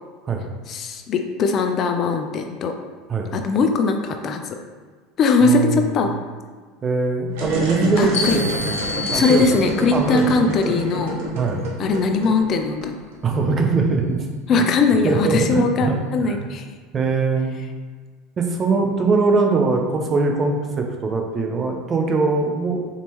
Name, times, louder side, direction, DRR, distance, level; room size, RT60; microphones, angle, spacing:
voice 1, 0.7-2.7 3.3-4.4 5.2-6.1 8.0-8.4 9.1-11.2 11.8-13.0 14.5-16.7, left 4 dB, 45° left, 5 dB, 0.4 m, -20 dB
voice 2, 5.4-5.9 6.8-8.7 9.1-9.5 9.9-10.3 11.3-11.6 13.2-14.7 15.0-16.5 16.9-17.5 18.4-22.9, right 4 dB, 30° right, 2 dB, 0.7 m, -21 dB
sound 1, 7.3-13.1, right 2 dB, 75° right, 0.9 m, -28 dB
sound 2, 8.1-10.0, left 3 dB, 80° left, 1.2 m, -28 dB
4.0 x 3.6 x 3.0 m, 1.5 s
supercardioid pair, 105°, 0 cm